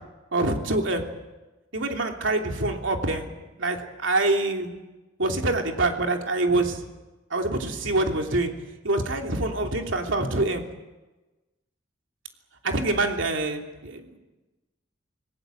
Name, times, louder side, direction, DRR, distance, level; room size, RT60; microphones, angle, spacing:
voice 1, 0.3-1.1 1.7-3.3 3.6-4.7 5.2-6.8 7.3-8.5 8.8-10.6 12.6-14.2, right 2 dB, 90° right, 3 dB, 3.0 m, -25 dB
26.5 x 18.5 x 7.9 m, 1.1 s
head